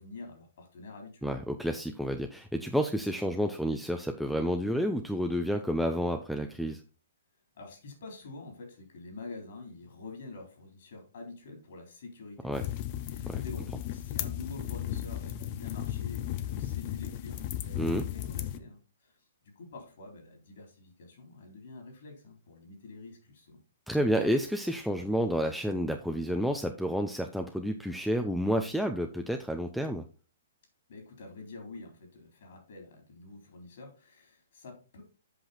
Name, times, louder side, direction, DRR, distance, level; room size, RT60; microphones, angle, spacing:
voice 1, 0.0-1.3 7.5-12.5 13.1-19.2 19.6-23.6 30.9-35.0, left 3 dB, 60° left, 3 dB, 3.7 m, -47 dB
voice 2, 1.2-6.8 12.4-12.6 13.3-13.4 17.8-18.1 23.9-30.0, equal, ahead, 4 dB, 0.7 m, -30 dB
sound 1, 12.5-18.6, left 12 dB, 40° left, 0.8 m, -35 dB
8.0 x 5.7 x 4.3 m, 0.34 s
figure-of-eight pair, 120°, 0 cm